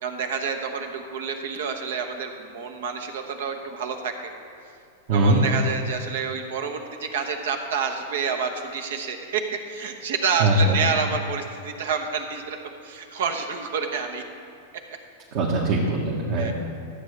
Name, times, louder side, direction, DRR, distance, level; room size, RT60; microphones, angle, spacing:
voice 1, 0.0-4.3 5.1-12.6 12.8-14.2 16.4-16.5, right 5 dB, 70° right, 5 dB, 1.1 m, -28 dB
voice 2, 5.1-5.4 10.4-10.8 15.3-16.5, right 2 dB, 55° right, -3 dB, 1.5 m, -21 dB
13.5 x 8.3 x 3.4 m, 2.4 s
hypercardioid pair, 110°, 0 cm